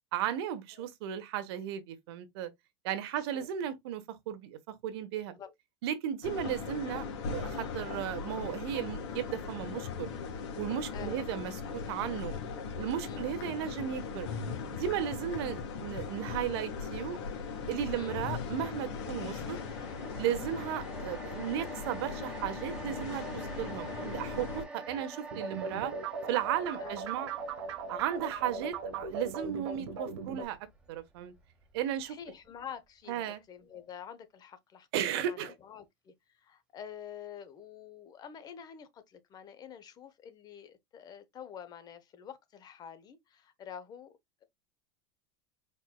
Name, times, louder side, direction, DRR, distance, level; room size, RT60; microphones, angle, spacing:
voice 1, 0.1-2.5 2.8-5.3 5.8-7.0 7.3-10.1 10.6-12.3 12.8-14.3 14.7-17.2 17.7-19.6 20.2-25.9 26.3-27.3 27.9-30.6 30.9-31.3 31.7-32.2 33.1-33.4 34.9-35.5, right 10 dB, 65° right, 1.0 m, -35 dB
voice 2, 3.2-3.5 5.3-5.5 10.9-11.2 13.0-13.4 17.9-18.3 24.9-25.1 26.8-27.0 32.1-34.9 35.1-44.4, left 8 dB, 30° left, 0.8 m, -48 dB
sound 1, 6.2-24.6, left 5 dB, 80° left, 2.2 m, -39 dB
sound 2, 17.7-32.1 32.4-32.6, right 3 dB, 5° right, 1.1 m, -48 dB
sound 3, 25.3-30.4, right 4 dB, 85° right, 1.9 m, -38 dB
4.6 x 4.4 x 2.2 m
supercardioid pair, 140°, 14 cm